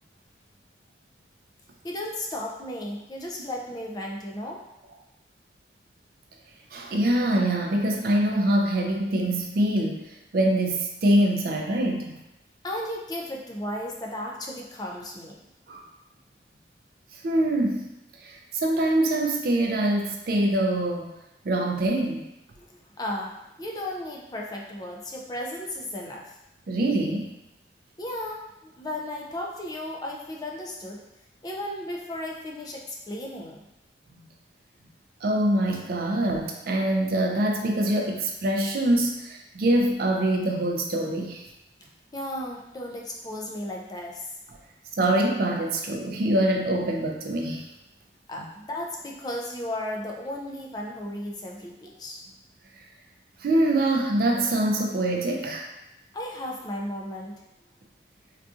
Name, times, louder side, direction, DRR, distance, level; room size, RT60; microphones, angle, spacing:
voice 1, 1.8-4.6 12.6-15.4 22.6-26.4 28.0-28.5 28.8-31.0 31.4-33.6 42.1-44.3 48.3-52.2 56.1-57.3, left 1 dB, 20° left, -1 dB, 0.3 m, -35 dB
voice 2, 6.7-12.2 15.7-15.8 17.2-17.9 18.2-21.2 21.5-22.3 26.7-27.3 35.2-41.4 45.0-47.7 48.4-48.5 53.4-55.7, right 1 dB, 55° right, 2 dB, 0.4 m, -24 dB
3.7 x 2.5 x 2.4 m, 0.90 s
head